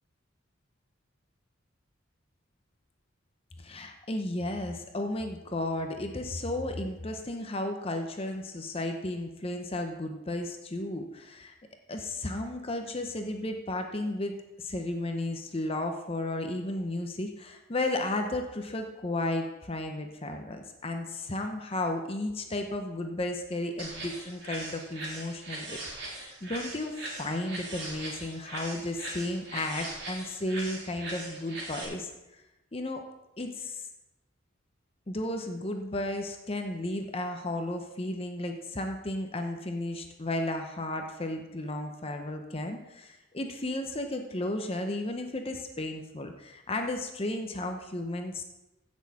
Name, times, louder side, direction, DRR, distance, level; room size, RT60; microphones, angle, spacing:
voice 1, 3.6-11.5 11.9-32.4 32.7-33.0 33.4-33.9 35.1-48.4, left 1 dB, 30° left, 5 dB, 0.7 m, -34 dB
sound 1, 23.8-31.8, right 2 dB, 55° right, 3.4 m, -40 dB
16.0 x 6.3 x 4.1 m, 0.99 s
head